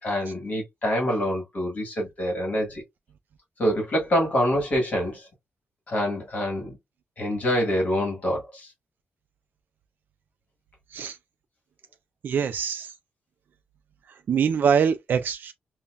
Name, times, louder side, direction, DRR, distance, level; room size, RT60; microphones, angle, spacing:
voice 1, 0.0-2.8 3.6-5.3 5.9-6.8 7.2-8.7, equal, 40° left, 1.6 m, -26 dB
voice 2, 12.2-12.9 14.3-15.5, right 7 dB, 55° right, 0.3 m, -23 dB
5.4 x 2.2 x 2.3 m
wide cardioid pair, 150°, 4 cm